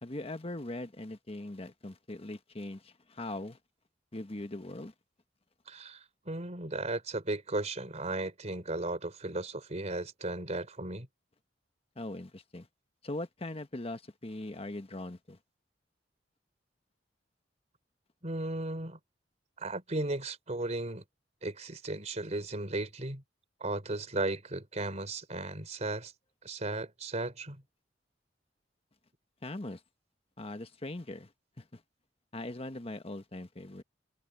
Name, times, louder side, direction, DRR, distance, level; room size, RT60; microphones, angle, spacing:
voice 1, 0.0-3.6 4.1-4.9 11.9-12.7 13.0-15.4 29.4-29.8 30.4-31.3 31.6-31.8 32.3-33.8, left 1 dB, 30° left, 1.3 m, -40 dB
voice 2, 5.7-11.1 18.2-19.0 19.6-21.0 21.4-23.2 23.6-26.1 26.4-27.6, right 2 dB, 40° right, 3.6 m, -35 dB
head